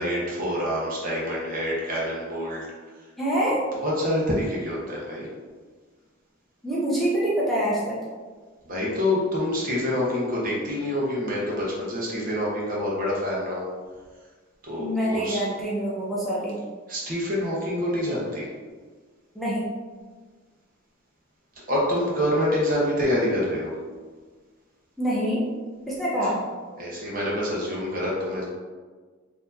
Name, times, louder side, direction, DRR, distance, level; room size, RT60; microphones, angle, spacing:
voice 1, 0.0-2.7 3.8-5.3 8.7-13.6 14.6-15.4 16.9-18.5 21.7-23.7 26.8-28.4, left 1 dB, 45° right, -4 dB, 1.0 m, -26 dB
voice 2, 3.2-3.6 6.6-8.0 14.8-16.6 19.3-19.7 25.0-25.5 25.9-26.4, right 1 dB, ahead, -8 dB, 0.6 m, -25 dB
4.5 x 2.8 x 2.6 m, 1.5 s
head